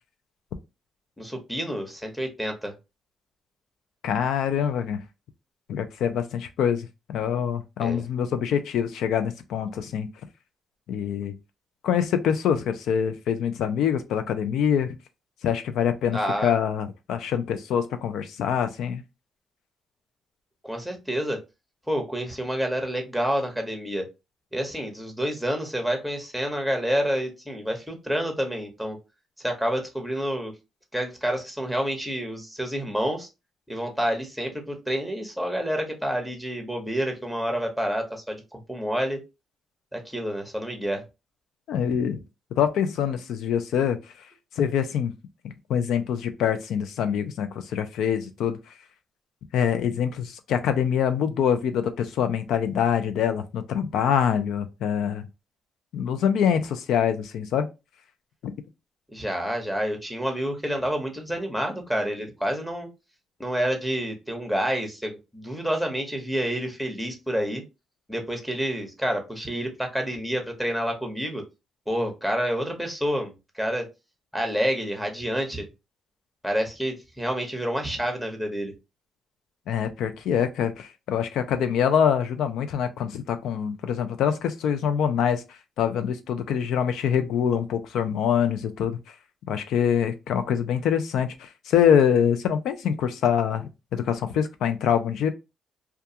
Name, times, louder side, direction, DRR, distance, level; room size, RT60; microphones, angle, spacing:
voice 1, 1.2-2.7 7.8-8.0 16.1-16.5 20.6-21.4 21.9-24.1 24.5-29.0 29.4-30.5 30.9-33.3 33.7-39.2 39.9-41.0 59.1-62.9 63.4-67.6 68.1-71.4 71.9-73.9 74.3-75.6 76.4-78.7, equal, ahead, 0.8 m, -28 dB
voice 2, 4.0-5.0 5.7-10.1 10.9-11.3 11.8-14.9 15.4-19.0 41.7-42.2 42.6-44.0 44.6-45.1 45.7-48.6 49.5-55.3 55.9-57.7 58.4-58.5 79.7-85.4 85.8-89.0 89.5-95.3, left 8 dB, 80° left, 0.4 m, -25 dB
2.3 x 2.3 x 2.7 m
cardioid pair, 75°, 0 cm